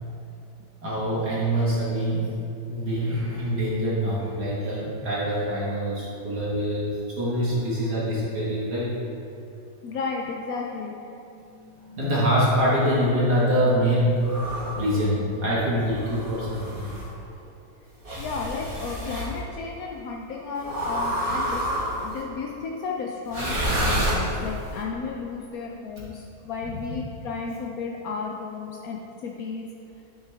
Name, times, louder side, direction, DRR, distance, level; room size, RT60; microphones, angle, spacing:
voice 1, 0.8-2.2 2.7-8.9 11.3-14.3 14.8-16.9, equal, 50° right, -7 dB, 2.0 m, -25 dB
voice 2, 9.8-10.9 18.2-21.7 22.0-29.7, left 4 dB, 75° left, 0 dB, 0.8 m, -33 dB
sound 1, 14.2-14.9 15.9-17.1 18.0-19.3 20.6-22.2 23.3-24.7, equal, 20° right, 1.5 m, -28 dB
11.0 x 6.7 x 3.4 m, 2.9 s
omnidirectional pair, 2.2 m